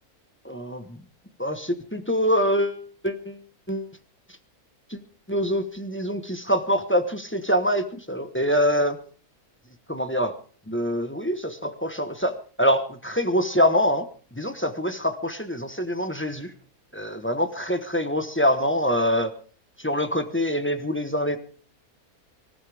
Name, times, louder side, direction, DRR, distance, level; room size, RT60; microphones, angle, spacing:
voice 1, 0.4-1.0 1.4-3.4 3.7-3.9 4.9-5.0 5.3-9.0 9.9-10.4 10.7-14.1 14.3-16.5 16.9-19.3 19.8-21.4, equal, 10° left, 8 dB, 1.1 m, -25 dB
25.0 x 14.0 x 3.5 m, 0.41 s
omnidirectional pair, 1.6 m